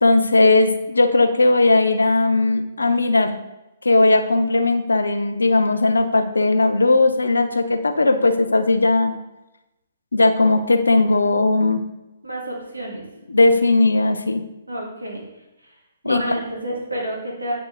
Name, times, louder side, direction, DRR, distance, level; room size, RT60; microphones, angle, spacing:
voice 1, 0.0-3.4 3.8-9.1 10.1-11.8 13.3-14.4 16.0-16.2, left 2 dB, 75° left, 8 dB, 0.8 m, -17 dB
voice 2, 12.2-13.0 14.7-15.2 15.6-15.7 16.0-17.5, right 1 dB, 85° right, -1 dB, 2.3 m, -29 dB
8.9 x 6.0 x 3.8 m, 0.99 s
figure-of-eight pair, 125°, 0 cm